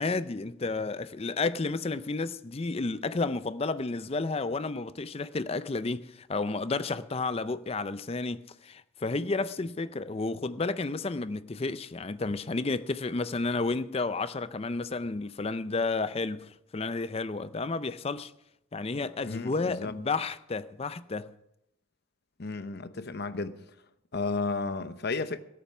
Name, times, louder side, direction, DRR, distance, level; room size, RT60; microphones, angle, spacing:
voice 1, 0.0-18.3 18.7-21.3, left 3 dB, 30° left, 0.5 m, -31 dB
voice 2, 19.3-20.0 22.4-23.6 24.1-25.4, left 3 dB, 50° left, 0.8 m, -33 dB
17.0 x 8.7 x 6.0 m
head